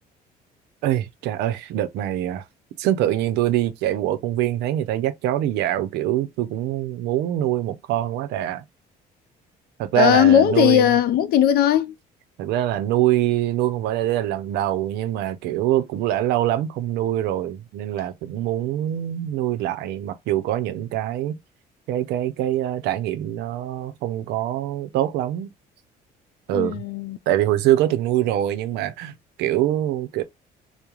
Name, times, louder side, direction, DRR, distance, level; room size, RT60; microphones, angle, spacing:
voice 1, 0.8-2.4 2.8-8.6 9.8-10.9 12.4-21.4 21.9-25.5 26.5-26.8 27.3-29.1 29.4-30.2, right 12 dB, 85° right, 0.5 m, -24 dB
voice 2, 10.0-11.9 26.5-27.2, left 10 dB, 65° left, 0.4 m, -18 dB
2.4 x 2.0 x 2.9 m
cardioid pair, 110°, 17 cm